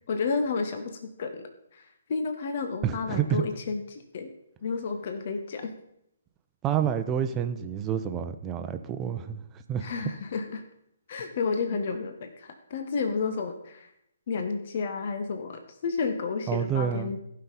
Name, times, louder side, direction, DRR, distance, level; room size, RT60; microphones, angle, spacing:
voice 1, 0.1-4.3 4.6-5.7 9.8-10.6 11.1-13.9 14.3-17.2, left 4 dB, 50° left, 7 dB, 0.9 m, -31 dB
voice 2, 2.8-3.4 6.6-9.9 16.5-17.1, right 9 dB, 20° right, 8 dB, 0.7 m, -28 dB
15.5 x 5.6 x 4.0 m, 0.81 s
figure-of-eight pair, 135°, 0 cm